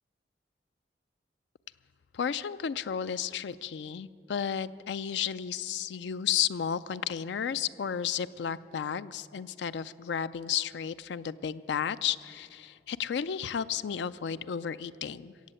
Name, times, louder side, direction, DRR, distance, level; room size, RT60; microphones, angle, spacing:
voice 1, 2.1-15.3, left 8 dB, 75° left, 15 dB, 0.4 m, -33 dB
15.5 x 8.3 x 7.7 m, 2.5 s
head